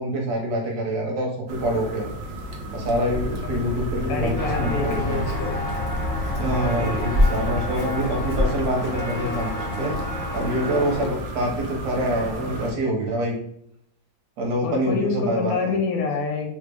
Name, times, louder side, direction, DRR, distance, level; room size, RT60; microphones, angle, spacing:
voice 1, 0.0-2.1 2.7-5.2 6.4-10.0 10.3-13.4 14.4-15.8, equal, 65° right, -1 dB, 1.2 m, -26 dB
sound 1, 1.5-12.7, right 1 dB, 85° right, 0.6 m, -34 dB
sound 2, 3.1-8.4, left 2 dB, 70° left, 1.0 m, -31 dB
voice 2, 4.1-5.8 14.6-16.5, left 4 dB, 85° left, 1 dB, 1.6 m, -27 dB
Walk footsteps, 4.4-11.1, left 1 dB, 30° left, 0.6 m, -27 dB
3.9 x 2.0 x 3.3 m, 0.71 s
omnidirectional pair, 2.0 m